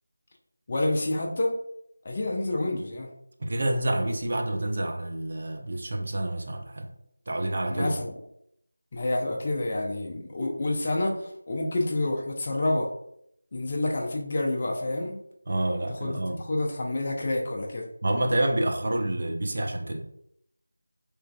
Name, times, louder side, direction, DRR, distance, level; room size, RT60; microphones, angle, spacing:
voice 1, 0.7-1.5 2.0-3.1 7.7-8.1 8.9-12.9 13.5-15.2 16.0-17.9, left 2 dB, 30° left, 0 dB, 0.4 m, -28 dB
voice 2, 3.4-6.9 7.3-8.0 15.5-16.5 18.0-20.1, right 1 dB, 40° right, 3 dB, 0.4 m, -28 dB
3.1 x 2.3 x 2.2 m, 0.74 s
figure-of-eight pair, 165°, 0 cm